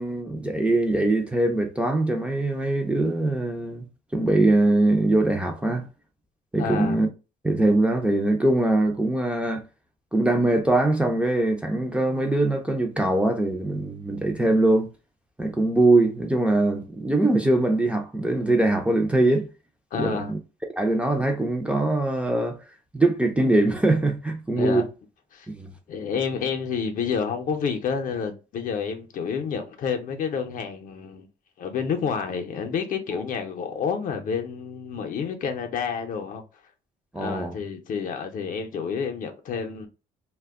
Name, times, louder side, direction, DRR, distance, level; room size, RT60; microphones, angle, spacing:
voice 1, 0.0-3.8 4.1-5.8 6.5-7.1 7.4-9.6 10.1-14.9 15.4-19.5 19.9-20.4 20.8-22.6 22.9-24.9 25.5-25.7 37.1-37.5, right 2 dB, 5° right, 0.4 m, -22 dB
voice 2, 6.6-7.0 19.9-20.3 24.6-24.9 25.3-25.5 25.9-31.3 31.6-36.4 37.2-39.9, left 6 dB, 55° left, 0.6 m, -29 dB
2.2 x 2.0 x 3.4 m
cardioid pair, 110°, 17 cm